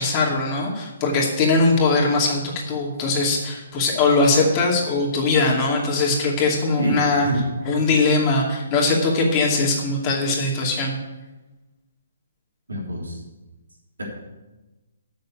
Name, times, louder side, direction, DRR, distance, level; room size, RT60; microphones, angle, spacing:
voice 1, 0.0-7.3 7.7-11.0, left 3 dB, 30° left, -1 dB, 2.5 m, -21 dB
voice 2, 6.8-7.4 12.7-13.2 14.0-14.1, right 1 dB, 80° right, -2 dB, 3.5 m, -27 dB
8.0 x 6.7 x 8.3 m, 1.1 s
figure-of-eight pair, 135°, 0 cm